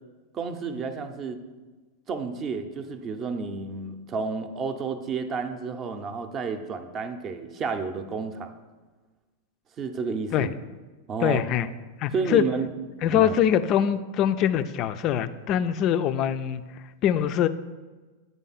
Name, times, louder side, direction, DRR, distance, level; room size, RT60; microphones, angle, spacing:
voice 1, 0.3-1.4 2.1-8.5 9.8-10.5 11.1-11.4 12.1-12.7 13.1-13.4, right 5 dB, 35° right, 8 dB, 0.6 m, -31 dB
voice 2, 11.2-11.7 12.0-12.4 13.0-16.6 17.0-17.5, left 10 dB, 40° left, 12 dB, 0.3 m, -23 dB
8.2 x 3.5 x 4.1 m, 1.3 s
figure-of-eight pair, 95°, 0 cm